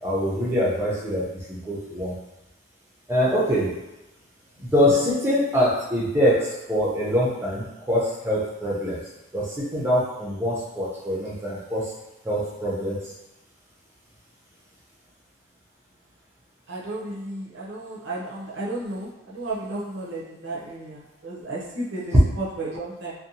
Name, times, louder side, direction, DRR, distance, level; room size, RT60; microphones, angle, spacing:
voice 1, 0.0-2.1 3.1-3.7 4.6-9.0 9.3-11.9 12.2-13.0, equal, 10° right, -6 dB, 0.5 m, -24 dB
voice 2, 16.7-23.1, right 2 dB, 65° right, -5 dB, 0.6 m, -33 dB
2.7 x 2.1 x 2.6 m, 0.96 s
head